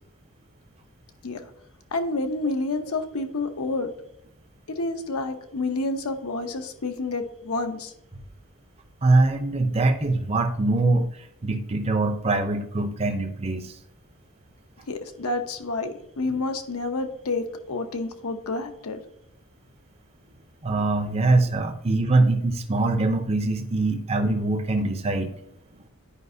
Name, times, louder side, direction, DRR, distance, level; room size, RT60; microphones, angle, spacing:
voice 1, 1.9-3.9 4.7-7.9 14.9-19.0, left 2 dB, 85° left, 6 dB, 0.8 m, -29 dB
voice 2, 9.0-11.1 11.4-13.7 20.6-25.3, right 2 dB, 30° right, 6 dB, 0.6 m, -23 dB
9.8 x 5.0 x 2.7 m, 0.72 s
head